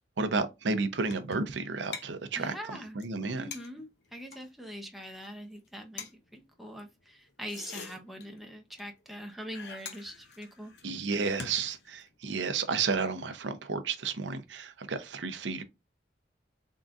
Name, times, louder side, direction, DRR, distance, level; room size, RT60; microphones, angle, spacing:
voice 1, 0.2-3.5 10.8-15.6, right 4 dB, 85° right, 0.6 m, -32 dB
sound 1, 1.1-1.6 1.9-2.1 2.4-2.5 2.7-2.8 3.0-3.1 3.5-4.5 5.0-5.3 5.6-5.7 6.0-6.1 7.3-8.5 8.8-8.9 9.1-9.2 9.5-12.1, left 5 dB, 70° left, 0.7 m, -44 dB
voice 2, 2.4-3.0 3.4-10.7, equal, ahead, 0.7 m, -43 dB
3.8 x 3.6 x 2.4 m
head